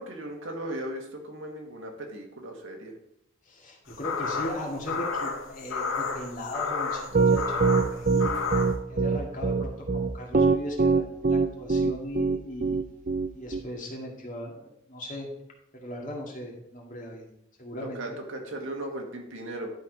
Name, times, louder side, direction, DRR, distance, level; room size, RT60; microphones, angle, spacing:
voice 1, 0.0-2.9 18.0-19.7, right 1 dB, 70° right, 1 dB, 1.9 m, -37 dB
voice 2, 3.5-8.3 8.9-12.8 13.3-15.3 15.7-17.2 17.6-18.2, left 1 dB, 40° left, -1 dB, 2.2 m, -38 dB
sound 1, 3.9-8.8, left 4 dB, 80° left, 0.9 m, -31 dB
Piano, 7.1-13.6, right 4 dB, 40° right, 0.5 m, -22 dB
11.5 x 4.8 x 4.8 m, 0.80 s
head